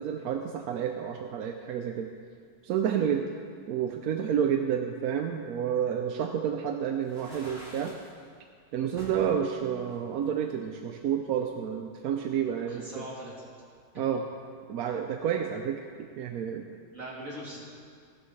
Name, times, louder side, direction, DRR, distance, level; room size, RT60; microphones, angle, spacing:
voice 1, 0.0-2.1 2.6-3.2 3.7-7.9 8.7-13.0 14.0-14.2 14.7-16.7, right 8 dB, 70° right, 4 dB, 1.0 m, -30 dB
sound 1, 7.0-8.1 9.0-9.3 9.9-10.9, equal, 30° right, 3.1 m, -46 dB
voice 2, 12.6-13.3 16.7-17.6, equal, 50° right, -6 dB, 3.3 m, -41 dB
16.0 x 12.5 x 3.2 m, 2.1 s
omnidirectional pair, 1.8 m